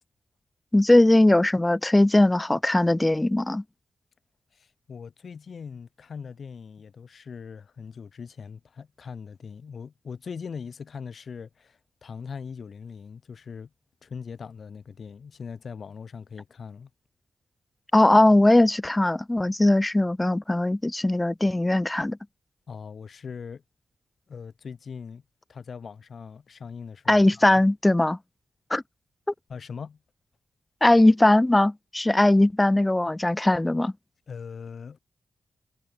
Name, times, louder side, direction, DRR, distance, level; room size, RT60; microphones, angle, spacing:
voice 1, 0.7-3.6 17.9-22.2 27.1-28.2 28.7-28.8 30.8-33.9, left 1 dB, 15° left, 0.6 m, -20 dB
voice 2, 4.5-13.7 14.0-16.9 22.7-23.6 24.3-25.2 25.5-27.4 29.5-30.0 34.3-35.0, left 6 dB, 60° left, 3.1 m, -40 dB
wide cardioid pair, 115°, 0 cm